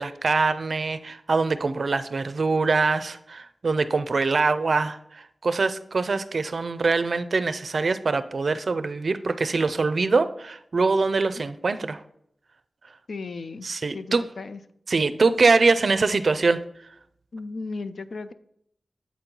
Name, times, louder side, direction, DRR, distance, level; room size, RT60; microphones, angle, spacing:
voice 1, 0.0-12.0 13.6-14.3 14.9-16.6, right 4 dB, 65° right, 12 dB, 0.4 m, -23 dB
voice 2, 13.1-13.7 13.9-14.6 17.3-18.3, left 3 dB, 75° left, 12 dB, 0.4 m, -35 dB
8.2 x 4.4 x 3.8 m, 0.72 s
wide cardioid pair, 95°, 0 cm